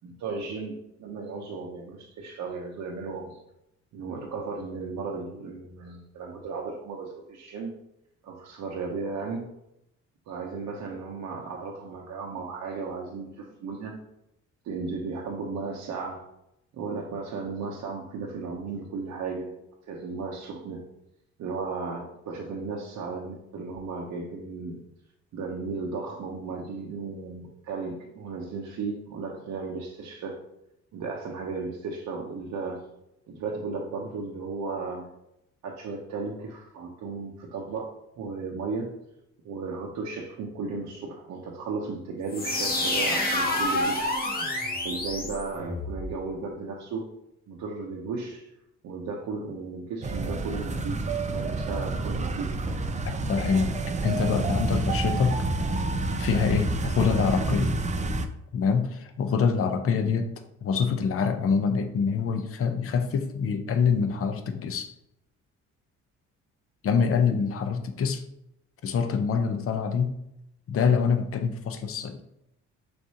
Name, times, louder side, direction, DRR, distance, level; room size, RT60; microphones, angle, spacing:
voice 1, 0.0-3.4 3.9-7.7 8.2-9.4 10.3-13.9 14.6-16.2 16.7-19.5 19.9-20.8 21.4-24.8 25.3-30.4 30.9-32.8 33.3-35.1 35.6-39.0 39.4-44.2 44.8-47.1 47.5-48.5 48.8-52.6, right 4 dB, 65° right, -1 dB, 0.8 m, -35 dB
sound 1, 42.3-46.1, left 1 dB, 30° left, 1.2 m, -28 dB
sound 2, 50.0-58.3, right 3 dB, 25° right, 0.5 m, -29 dB
voice 2, 53.0-53.7 54.0-55.5 56.2-57.7 58.5-60.3 60.6-64.9 66.8-68.2 68.8-70.2 70.7-72.2, left 6 dB, 45° left, 7 dB, 0.6 m, -25 dB
6.3 x 2.6 x 2.8 m, 0.82 s
supercardioid pair, 70°, 32 cm